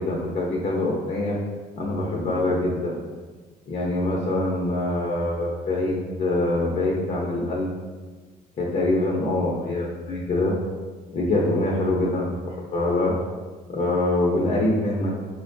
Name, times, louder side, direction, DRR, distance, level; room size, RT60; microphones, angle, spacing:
voice 1, 0.0-1.4 1.8-3.0 3.7-7.7 8.6-10.5 11.1-12.3 12.6-13.1 13.7-15.1, left 2 dB, 45° left, -3 dB, 0.7 m, -24 dB
4.9 x 2.2 x 2.6 m, 1.4 s
cardioid pair, 110°, 17 cm